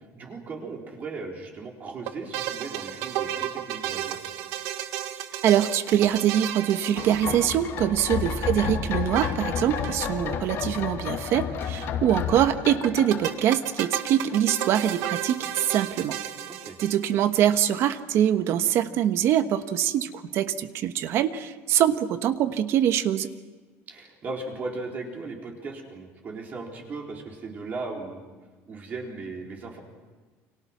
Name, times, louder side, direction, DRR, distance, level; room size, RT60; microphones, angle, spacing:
voice 1, 0.0-4.2 8.0-8.4 16.5-16.8 23.9-28.3 28.7-29.8, right 3 dB, 30° right, 0 dB, 4.3 m, -37 dB
sound 1, 2.1-7.8 9.2-10.0 10.3-10.4 10.5-10.6 12.8-17.3, right 12 dB, 80° right, 1.6 m, -33 dB
voice 2, 5.4-16.2 16.8-23.3, right 10 dB, 50° right, 10 dB, 1.2 m, -24 dB
sound 2, 7.0-14.3 14.6-14.7, left 7 dB, 50° left, 2.4 m, -31 dB
29.5 x 25.5 x 6.1 m, 1.3 s
cardioid pair, 165°, 5 cm